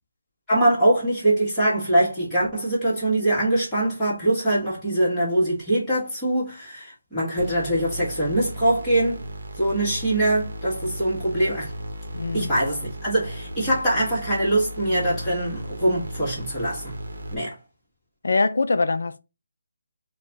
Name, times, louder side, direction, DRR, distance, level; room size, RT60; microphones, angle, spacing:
voice 1, 0.5-9.2 9.6-11.7 12.3-16.9 17.3-17.5, right 1 dB, 5° left, 1.6 m, -23 dB
sound 1, 7.4-17.4, equal, 50° right, 1.0 m, -35 dB
voice 2, 12.1-12.5 18.2-19.2, left 3 dB, 65° left, 0.5 m, -23 dB
4.4 x 2.3 x 4.1 m
hypercardioid pair, 175°, 0 cm